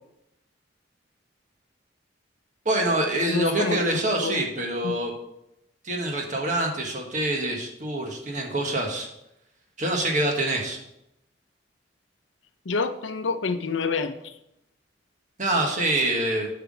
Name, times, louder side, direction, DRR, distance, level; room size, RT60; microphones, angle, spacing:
voice 1, 2.6-5.1 5.8-9.1 9.8-10.8 15.4-16.5, right 1 dB, 40° right, 1 dB, 1.5 m, -25 dB
voice 2, 3.3-3.8 4.2-4.4 4.8-4.9 12.7-14.3, left 4 dB, 90° left, 10 dB, 0.7 m, -27 dB
8.1 x 5.8 x 5.1 m, 0.82 s
head